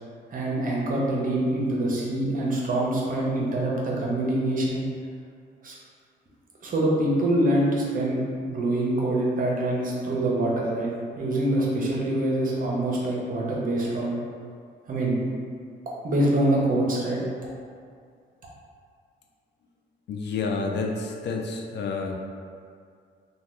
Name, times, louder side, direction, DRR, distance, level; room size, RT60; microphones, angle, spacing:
voice 1, 0.3-4.8 5.6-5.8 6.6-8.2 8.4-14.1 14.9-15.2 16.0-17.2, right 1 dB, 45° right, -3 dB, 0.7 m, -25 dB
voice 2, 20.1-22.1, left 4 dB, 65° left, 2 dB, 0.4 m, -29 dB
2.7 x 2.2 x 3.3 m, 2.2 s
cardioid pair, 90°, 20 cm